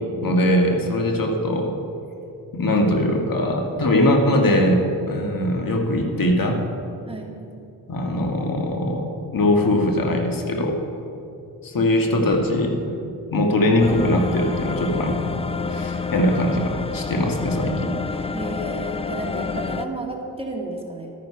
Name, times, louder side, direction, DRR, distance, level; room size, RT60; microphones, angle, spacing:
voice 1, 0.2-1.7 2.5-4.8 5.1-6.6 7.9-10.8 11.6-12.7 13.3-15.3 15.7-18.0, left 1 dB, 55° left, 3 dB, 1.6 m, -21 dB
sound 1, 13.8-19.9, left 4 dB, 15° left, 0.5 m, -28 dB
voice 2, 18.3-21.1, right 1 dB, 15° right, 0 dB, 1.9 m, -32 dB
12.5 x 9.5 x 5.7 m, 2.7 s
cardioid pair, 70°, 39 cm